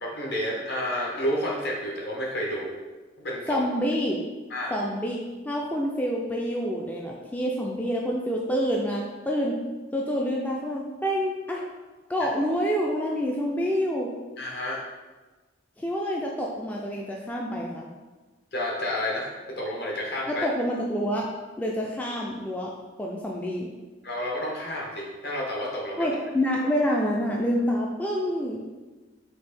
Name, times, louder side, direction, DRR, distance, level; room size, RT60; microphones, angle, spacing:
voice 1, 0.0-2.7 3.2-3.6 4.5-4.7 14.4-14.8 18.5-20.5 24.0-26.1, left 1 dB, 55° left, -2 dB, 1.0 m, -30 dB
voice 2, 3.5-4.2 4.7-9.6 9.9-11.6 12.1-14.1 15.8-17.9 20.3-21.3 21.6-22.7 23.0-23.7 26.0-28.6, equal, 10° left, -2 dB, 0.3 m, -27 dB
4.4 x 2.8 x 4.2 m, 1.3 s
head